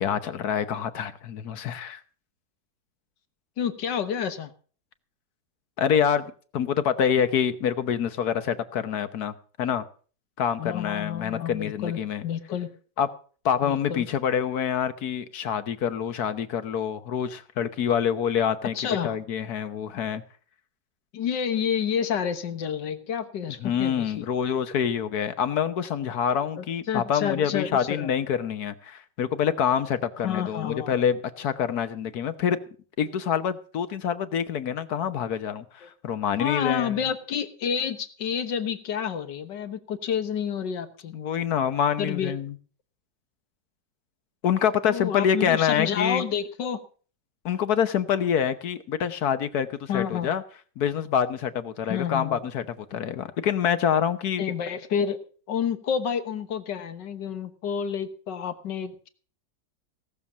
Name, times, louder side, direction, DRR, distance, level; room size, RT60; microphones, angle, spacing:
voice 1, 0.0-2.0 5.8-9.8 10.4-12.2 13.0-13.1 13.4-20.2 23.6-32.6 33.0-37.0 41.1-42.5 44.4-46.2 47.4-50.4 50.8-52.6 52.9-54.4, left 8 dB, 65° left, 12 dB, 1.5 m, -26 dB
voice 2, 3.6-4.5 10.6-12.7 13.6-14.1 18.8-19.2 21.1-24.1 26.6-28.1 30.2-30.9 36.4-41.2 42.0-42.4 44.9-46.8 49.9-50.3 51.8-52.4 54.4-55.2 55.5-59.1, left 8 dB, 80° left, 10 dB, 1.9 m, -29 dB
17.5 x 7.0 x 7.2 m, 0.42 s
omnidirectional pair, 1.9 m